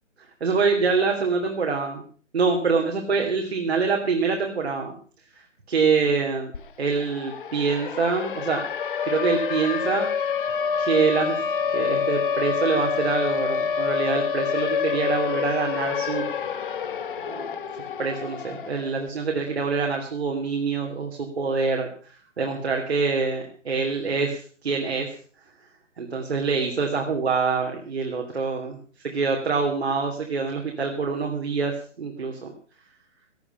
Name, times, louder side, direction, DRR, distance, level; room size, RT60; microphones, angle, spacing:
voice 1, 0.4-2.0 2.3-4.9 5.7-6.5 6.8-8.6 9.0-10.1 10.8-11.4 11.7-16.3 17.3-17.4 18.0-21.9 22.4-25.1 26.0-28.8 29.0-32.5, right 5 dB, 55° right, 1 dB, 3.0 m, -25 dB
Siren, 6.5-6.6 6.9-19.0, left 6 dB, 45° left, 1.2 m, -27 dB
17.5 x 11.0 x 5.6 m, 0.43 s
figure-of-eight pair, 135°, 37 cm